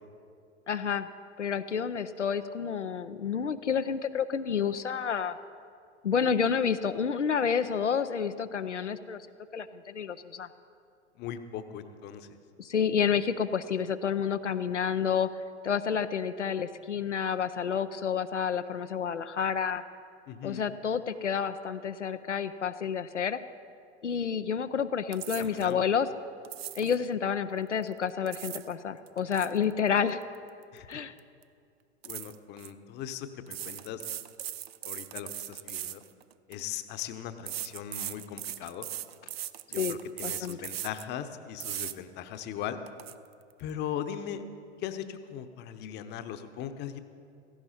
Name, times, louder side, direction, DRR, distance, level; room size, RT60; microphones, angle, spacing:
voice 1, 0.7-1.1 1.4-5.4 6.0-9.2 9.5-10.5 12.6-15.3 15.6-19.8 20.4-23.4 24.0-26.1 26.7-30.2 30.9-31.1 39.8-40.0 40.2-40.6, left 7 dB, 85° left, 10 dB, 0.6 m, -29 dB
voice 2, 11.2-12.4 20.3-20.7 25.4-25.9 30.7-30.9 32.0-34.0 34.8-36.0 36.5-38.9 39.7-42.8 43.6-44.4 44.8-47.0, left 9 dB, 30° left, 10 dB, 0.9 m, -39 dB
sound 1, 25.1-25.7 26.4-27.0 28.0-28.7 29.1-30.9 31.2-31.4 32.0-32.7 33.5-36.6 37.5-41.1 41.6-41.9 42.4-42.5 42.9-43.1, right 12 dB, 60° right, 0.6 m, -39 dB
16.5 x 15.0 x 4.1 m, 2.3 s
figure-of-eight pair, 90°, 35 cm